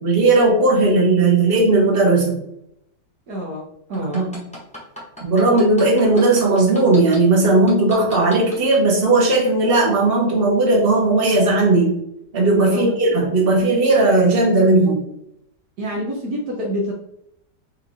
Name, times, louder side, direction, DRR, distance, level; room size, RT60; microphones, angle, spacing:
voice 1, 0.0-2.4 4.0-4.4 5.2-12.0 12.3-15.0, right 2 dB, 35° right, -2 dB, 1.4 m, -16 dB
voice 2, 3.3-4.2 12.7-12.9 15.8-16.9, equal, 65° right, -2 dB, 1.3 m, -27 dB
sound 1, 3.9-7.2 7.7-8.8 9.3-9.4, left 1 dB, 5° left, 1.2 m, -36 dB
5.0 x 2.8 x 3.7 m, 0.74 s
omnidirectional pair, 1.8 m